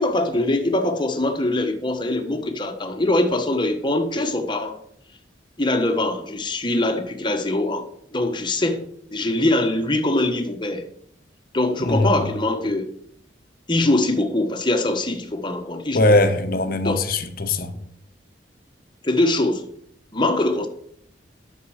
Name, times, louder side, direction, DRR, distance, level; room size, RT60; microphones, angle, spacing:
voice 1, 0.0-4.8 5.6-7.9 8.1-8.8 9.1-10.8 11.5-12.9 13.7-16.1 16.8-17.0 19.0-19.7 20.1-20.7, left 2 dB, 25° left, 1.3 m, -22 dB
voice 2, 11.8-12.2 15.9-17.8, left 2 dB, 50° left, 1.0 m, -20 dB
9.5 x 6.8 x 6.4 m
head